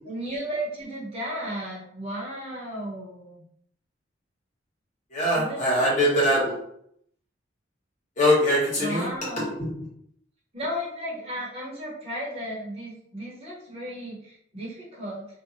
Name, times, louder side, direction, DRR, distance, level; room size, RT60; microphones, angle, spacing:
voice 1, 0.0-3.4 5.3-6.1 8.8-9.5 10.5-15.3, equal, 35° right, -5 dB, 1.0 m, -34 dB
voice 2, 5.1-6.5 8.2-9.1 9.4-9.7, equal, 40° left, -7 dB, 1.3 m, -22 dB
2.8 x 2.3 x 2.6 m, 0.71 s
head